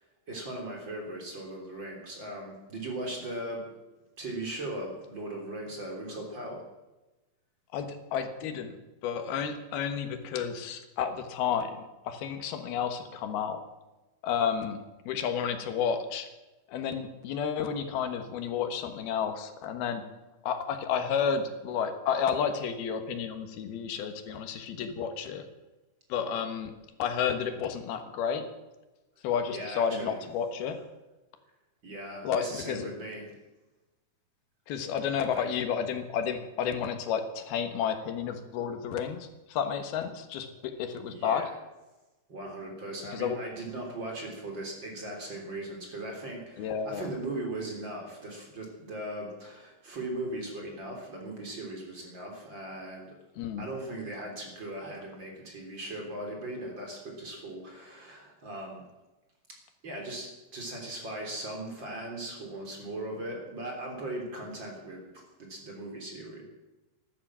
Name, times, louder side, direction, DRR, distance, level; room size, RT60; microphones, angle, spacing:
voice 1, 0.3-3.7 4.2-6.6 29.5-30.2 31.8-33.3 35.3-35.5 41.1-41.5 42.3-53.2 53.6-58.8 59.8-66.4, right 1 dB, 30° right, 1 dB, 3.8 m, -38 dB
voice 2, 7.7-13.6 14.2-16.3 16.7-20.0 20.4-25.4 26.1-26.7 27.0-28.5 29.2-30.8 32.2-32.9 34.7-41.5 43.1-43.4 46.6-47.1 53.4-53.7, left 7 dB, 90° left, 8 dB, 3.3 m, -31 dB
15.0 x 12.0 x 7.5 m, 1.1 s
omnidirectional pair, 4.3 m